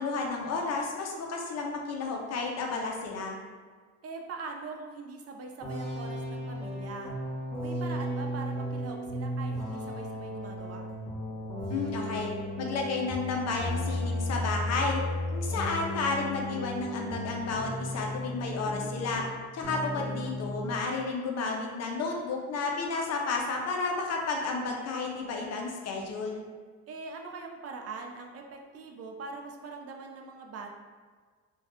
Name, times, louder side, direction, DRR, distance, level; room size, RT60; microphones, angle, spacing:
voice 1, 0.0-3.4 11.7-15.0 15.3-19.3 19.5-26.4, left 3 dB, 60° left, 1 dB, 0.6 m, -32 dB
voice 2, 4.0-7.1 7.6-10.9 19.7-20.2 26.9-30.7, right 4 dB, 55° right, 2 dB, 0.5 m, -42 dB
sound 1, 5.6-19.3 19.6-20.8, left 1 dB, 5° left, 0.9 m, -35 dB
2.6 x 2.2 x 3.5 m, 1.5 s
cardioid pair, 90°, 30 cm